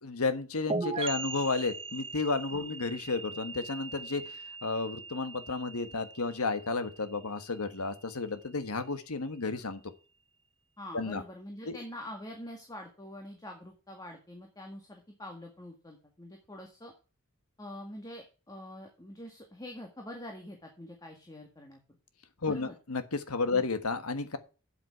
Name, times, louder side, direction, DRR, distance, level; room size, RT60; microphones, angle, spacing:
voice 1, 0.0-9.8 10.9-11.2 11.7-11.8 22.4-24.4, left 3 dB, 80° left, 10 dB, 1.4 m, -32 dB
sound 1, 0.7-8.2, right 4 dB, 25° right, 0.6 m, -40 dB
voice 2, 10.8-16.9 17.6-21.8 22.5-22.8, left 1 dB, 20° left, 2 dB, 1.9 m, -45 dB
9.1 x 7.9 x 4.6 m, 0.34 s
head